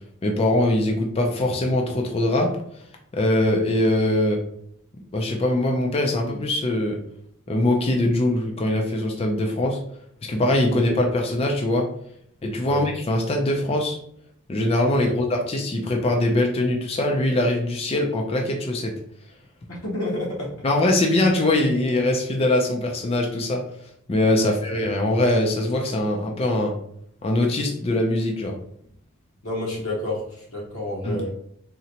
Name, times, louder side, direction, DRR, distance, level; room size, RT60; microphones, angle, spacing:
voice 1, 0.2-2.5 3.1-4.4 5.1-7.0 7.5-9.8 10.2-11.9 12.4-14.0 14.5-18.9 20.6-23.6 24.1-26.7 27.2-28.5 31.0-31.3, left 1 dB, 25° left, 1 dB, 0.3 m, -22 dB
voice 2, 19.7-20.5 24.4-24.5 29.4-31.3, left 1 dB, 65° left, -3 dB, 0.8 m, -30 dB
3.8 x 2.1 x 2.8 m, 0.69 s
head